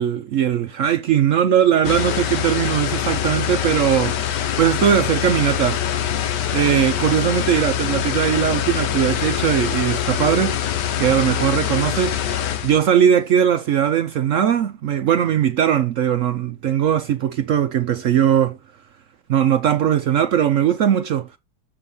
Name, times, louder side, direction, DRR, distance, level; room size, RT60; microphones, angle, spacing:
voice 1, 0.0-5.8 6.5-10.7 11.0-12.2 12.6-18.6 19.3-21.3, right 9 dB, 70° right, 0.8 m, -19 dB
sound 1, 1.8-12.8, left 10 dB, 80° left, 1.5 m, -24 dB
6.8 x 3.8 x 5.3 m
omnidirectional pair, 1.8 m